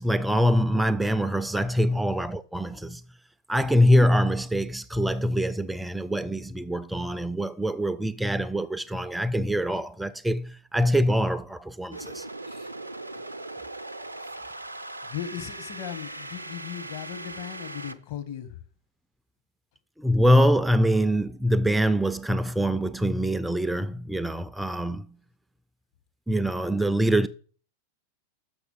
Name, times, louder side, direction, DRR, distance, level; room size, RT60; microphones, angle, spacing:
voice 1, 0.0-3.0 3.5-12.3 20.0-25.1 26.3-27.3, equal, 5° right, 0.3 m, -24 dB
sound 1, 11.9-18.0, right 2 dB, 85° right, 0.5 m, -39 dB
voice 2, 15.0-18.6, left 10 dB, 50° left, 1.0 m, -37 dB
6.5 x 6.3 x 5.2 m
figure-of-eight pair, 90°, 0 cm